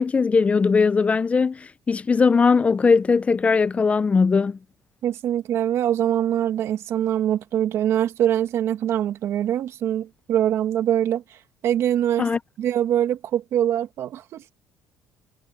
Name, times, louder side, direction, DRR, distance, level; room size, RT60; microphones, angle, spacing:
voice 1, 0.0-4.6 12.2-12.4, left 5 dB, 25° left, 0.7 m, -19 dB
voice 2, 5.0-11.2 11.6-12.3 12.6-14.4, right 10 dB, 60° right, 2.0 m, -23 dB
supercardioid pair, 95°, 5 cm